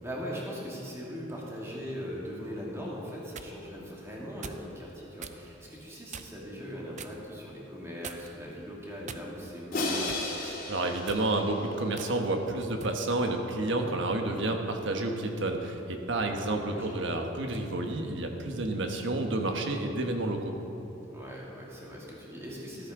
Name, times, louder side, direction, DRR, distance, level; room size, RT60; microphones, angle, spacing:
voice 1, 0.0-10.4 16.2-16.9 21.1-22.9, equal, 15° right, -5 dB, 2.5 m, -40 dB
sound 1, 3.0-3.5 4.4-4.7 5.2-5.4 6.1-6.5 7.0-7.2 8.0-8.4 9.1-9.6 10.1-10.3 11.0-11.3 12.0-12.1 12.8-13.0, right 6 dB, 40° right, 0.5 m, -43 dB
Crash cymbal, 9.7-11.9, left 2 dB, 50° left, 2.6 m, -34 dB
voice 2, 10.4-20.6, right 2 dB, 65° right, 3 dB, 1.3 m, -30 dB
13.5 x 13.5 x 3.8 m, 2.9 s
head